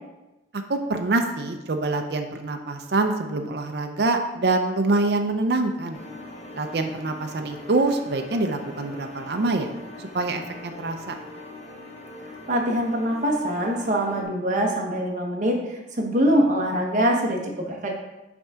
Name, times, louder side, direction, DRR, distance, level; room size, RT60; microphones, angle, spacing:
voice 1, 0.7-6.0 6.5-9.7 10.0-11.2, right 2 dB, 60° right, 5 dB, 0.5 m, -25 dB
sound 1, 5.9-14.2, left 2 dB, 35° left, 0.7 m, -42 dB
voice 2, 12.5-17.9, equal, 40° right, 0 dB, 1.0 m, -23 dB
6.0 x 3.6 x 5.5 m, 1.0 s
head